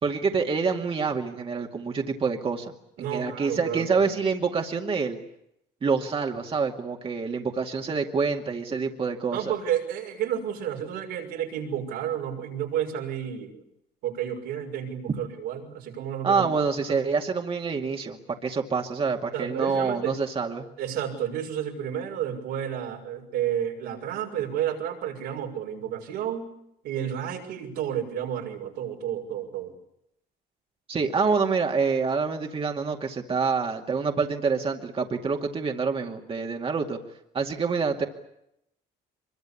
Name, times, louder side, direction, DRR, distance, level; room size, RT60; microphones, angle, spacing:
voice 1, 0.0-2.7 3.0-5.2 5.8-9.5 16.2-20.7 30.9-37.0 37.3-38.1, right 5 dB, 35° right, 2 dB, 2.3 m, -27 dB
voice 2, 3.0-4.1 9.3-13.6 14.0-16.5 16.9-17.0 19.3-20.2 20.8-26.5 26.8-29.7, right 9 dB, 85° right, 1 dB, 6.3 m, -31 dB
24.0 x 23.0 x 8.6 m, 0.79 s
cardioid pair, 110°, 17 cm